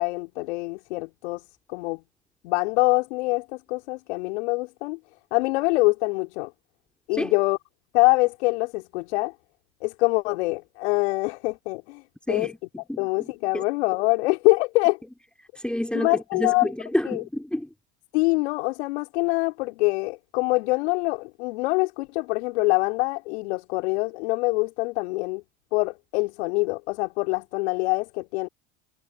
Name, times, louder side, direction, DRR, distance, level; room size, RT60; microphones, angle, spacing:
voice 1, 0.0-1.4 1.7-2.0 2.4-5.0 5.3-6.5 7.1-7.6 7.9-9.3 9.8-12.0 12.3-12.5 13.0-15.0 16.0-16.7 17.1-17.2 18.1-25.4 25.7-28.5, left 24 dB, 70° left, 4.1 m, -24 dB
voice 2, 12.3-13.6 15.5-17.7, left 1 dB, 5° left, 4.1 m, -30 dB
hypercardioid pair, 75°, 34 cm